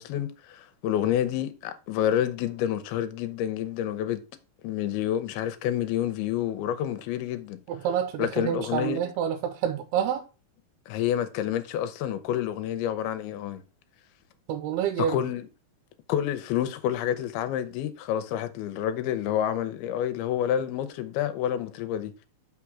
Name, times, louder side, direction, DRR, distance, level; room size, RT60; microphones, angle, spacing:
voice 1, 0.0-4.2 4.6-7.6 8.2-9.0 10.9-13.6 15.1-15.5 16.1-22.1, left 10 dB, 80° left, 2.7 m, -28 dB
voice 2, 7.7-10.3 14.5-15.2, right 9 dB, 90° right, 2.6 m, -28 dB
6.0 x 5.8 x 4.8 m
omnidirectional pair, 4.5 m